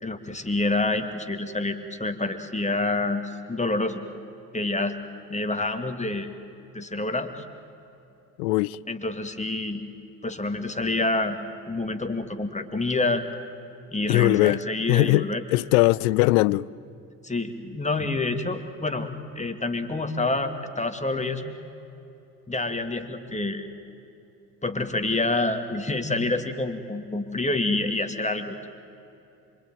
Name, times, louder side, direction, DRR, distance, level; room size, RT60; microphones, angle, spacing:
voice 1, 0.0-3.2 3.5-4.0 4.5-5.0 5.3-6.3 6.7-7.4 8.9-9.9 10.2-11.4 11.7-13.2 13.9-15.4 17.2-19.1 19.3-21.6 22.5-23.7 24.6-28.7, left 2 dB, 15° left, 2.3 m, -27 dB
voice 2, 8.4-8.8 14.1-14.6 14.9-16.7, left 20 dB, 75° left, 0.6 m, -20 dB
25.5 x 24.0 x 9.2 m
hypercardioid pair, 50°, 43 cm